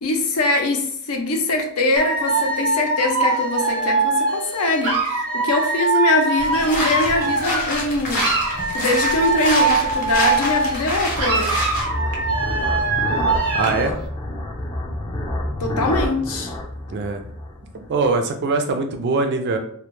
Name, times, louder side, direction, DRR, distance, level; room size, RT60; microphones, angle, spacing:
voice 1, 0.0-8.3 8.7-11.7 15.6-16.5, left 2 dB, 85° left, 3 dB, 0.5 m, -22 dB
Dog / Alarm, 2.0-7.9 8.1-10.9 11.1-13.9, right 3 dB, 90° right, 0.7 m, -22 dB
sound 1, 6.4-11.9, left 1 dB, 40° left, 0.8 m, -27 dB
sound 2, 8.6-18.1, left 1 dB, 20° left, 0.4 m, -29 dB
voice 2, 13.5-13.9 16.9-17.2 17.7-19.6, right 3 dB, 50° right, 5 dB, 0.4 m, -22 dB
2.2 x 2.1 x 3.0 m, 0.62 s
head